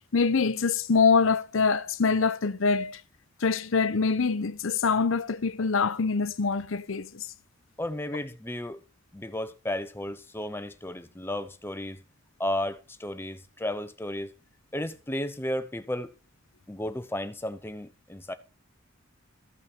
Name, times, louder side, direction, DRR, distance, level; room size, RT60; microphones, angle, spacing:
voice 1, 0.1-3.0 3.4-7.3, left 5 dB, 70° left, 0.7 m, -24 dB
voice 2, 7.8-8.8 9.1-12.0 12.4-14.3 14.7-16.1 16.7-18.3, left 1 dB, 10° left, 0.8 m, -33 dB
14.5 x 5.7 x 4.4 m
head